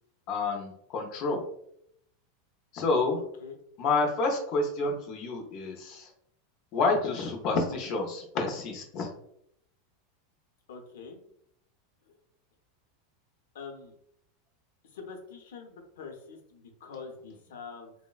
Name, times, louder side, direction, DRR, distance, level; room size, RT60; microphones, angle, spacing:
voice 1, 0.3-1.4 2.7-3.2 3.8-6.1 6.7-9.1, left 3 dB, 45° left, 2 dB, 0.5 m, -29 dB
voice 2, 3.1-3.6 10.7-11.2 12.0-12.2 13.5-13.9 14.8-17.9, left 5 dB, 90° left, 3 dB, 0.6 m, -45 dB
3.1 x 2.0 x 2.2 m, 0.71 s
supercardioid pair, 150°, 0 cm